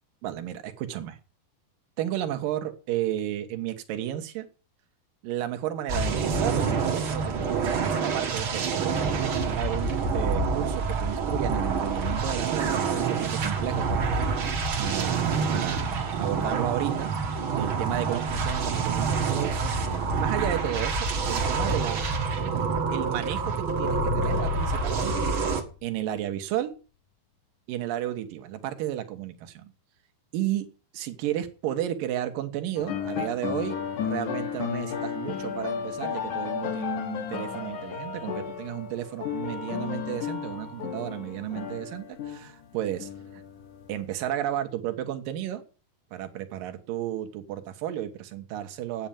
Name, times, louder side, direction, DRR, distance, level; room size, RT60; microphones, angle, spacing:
voice 1, 0.2-1.2 2.0-4.5 5.2-14.1 14.4-17.1 17.6-19.7 20.1-22.1 22.9-25.3 25.8-26.7 27.7-29.7 30.3-30.7 30.9-43.4 43.9-45.6 46.1-49.1, right 12 dB, 70° right, 7 dB, 2.9 m, -33 dB
sound 1, 5.9-25.6, right 5 dB, 45° right, 1.8 m, -27 dB
sound 2, 23.4-26.0, left 11 dB, 80° left, 1.8 m, -34 dB
sound 3, 32.8-44.1, left 7 dB, 60° left, 2.9 m, -33 dB
9.1 x 8.8 x 8.7 m, 0.36 s
omnidirectional pair, 4.3 m